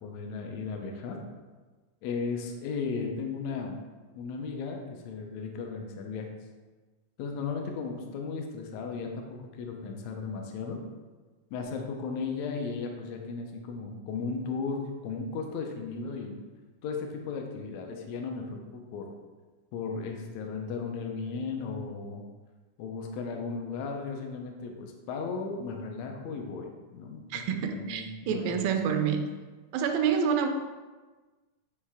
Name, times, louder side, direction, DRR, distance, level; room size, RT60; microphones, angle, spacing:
voice 1, 0.0-1.2 2.0-3.8 4.1-6.3 7.2-10.8 11.5-16.4 16.8-19.1 19.7-22.2 22.8-28.5, left 4 dB, 85° left, 2 dB, 1.5 m, -35 dB
voice 2, 27.3-29.3 29.7-30.5, right 7 dB, 85° right, 6 dB, 2.4 m, -28 dB
9.4 x 3.2 x 3.5 m, 1.3 s
omnidirectional pair, 4.1 m